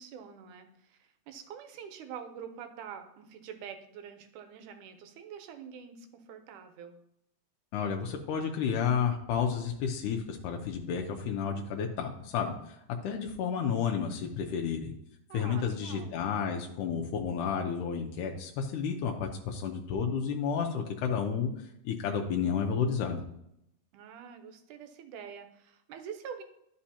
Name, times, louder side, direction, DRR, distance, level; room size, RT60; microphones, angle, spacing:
voice 1, 0.0-7.0 15.3-16.2 23.9-26.4, right 7 dB, 85° right, 8 dB, 2.3 m, -46 dB
voice 2, 7.7-14.9 15.3-21.5 21.8-23.2, left 7 dB, 85° left, 2 dB, 2.2 m, -31 dB
11.5 x 5.3 x 2.8 m, 0.78 s
omnidirectional pair, 3.5 m